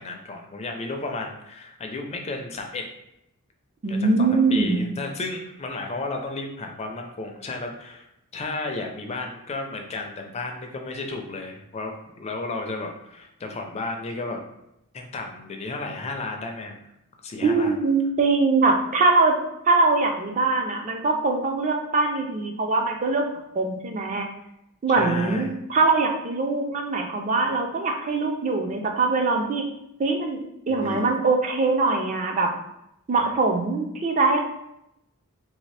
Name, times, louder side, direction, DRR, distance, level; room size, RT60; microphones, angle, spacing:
voice 1, 0.0-2.8 3.9-8.1 8.3-14.4 14.9-16.8 17.2-17.7 24.9-25.5 30.7-31.2 33.2-33.3, left 3 dB, 30° left, 3 dB, 0.4 m, -33 dB
voice 2, 3.8-4.8 17.4-19.4 19.7-23.3 23.5-24.3 24.8-29.7 30.0-30.4 30.7-32.5 33.1-34.4, right 3 dB, 35° right, 3 dB, 0.4 m, -22 dB
3.2 x 2.7 x 3.2 m, 0.81 s
head